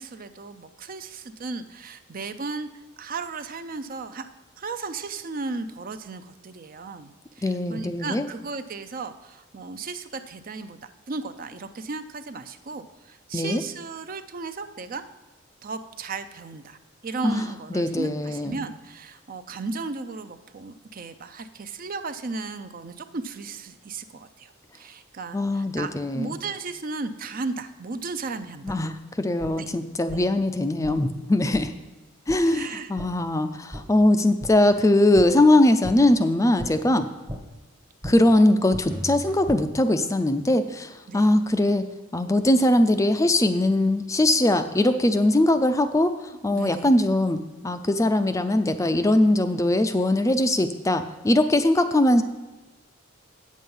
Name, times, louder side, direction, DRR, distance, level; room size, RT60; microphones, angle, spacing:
voice 1, 0.0-2.7 3.0-4.3 4.6-15.0 15.6-28.8 29.6-29.7 30.1-30.3 31.5-31.6 32.4-32.9 36.6-36.8 41.1-41.3 46.5-46.8, right 3 dB, 45° right, 10 dB, 0.5 m, -35 dB
voice 2, 7.4-8.3 13.3-13.6 17.2-17.4 17.7-18.6 25.3-26.4 28.6-31.7 32.3-37.1 38.0-41.8 42.1-47.4 47.6-52.2, left 1 dB, 15° left, 8 dB, 0.4 m, -21 dB
sound 1, 28.7-28.8 29.4-29.5 30.1-30.2 30.8-31.0 31.5-31.6 32.3-32.4 33.0-33.1 33.7-33.8 34.4-34.5 35.2-35.3 35.8-36.0 36.6-36.7 37.3-37.4 38.0-38.2 38.7-39.6, equal, 20° right, 0.9 m, -35 dB
8.6 x 7.4 x 5.4 m, 1.1 s
head